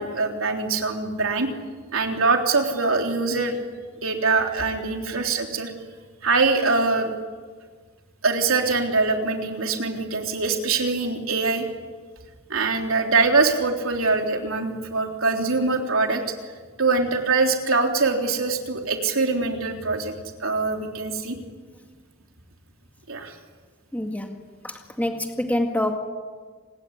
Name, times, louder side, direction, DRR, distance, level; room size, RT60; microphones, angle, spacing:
voice 1, 0.0-1.5 1.9-3.6 4.0-5.7 6.2-7.1 8.2-11.7 12.5-16.2 16.8-20.1 20.4-21.4 23.1-23.3, right 3 dB, 80° right, 3 dB, 3.6 m, -23 dB
voice 2, 23.9-26.0, left 1 dB, 10° left, 3 dB, 2.0 m, -27 dB
29.0 x 20.0 x 10.0 m, 1.5 s
head